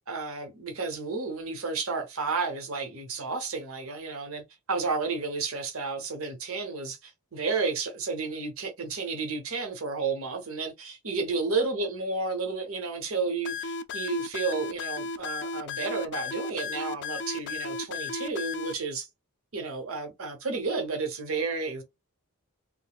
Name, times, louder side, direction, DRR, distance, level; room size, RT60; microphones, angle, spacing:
voice 1, 0.1-4.4 4.7-19.1 19.5-21.8, right 4 dB, 70° right, 1.0 m, -32 dB
sound 1, 13.4-18.7, left 4 dB, 55° left, 0.4 m, -34 dB
3.9 x 2.1 x 2.3 m
head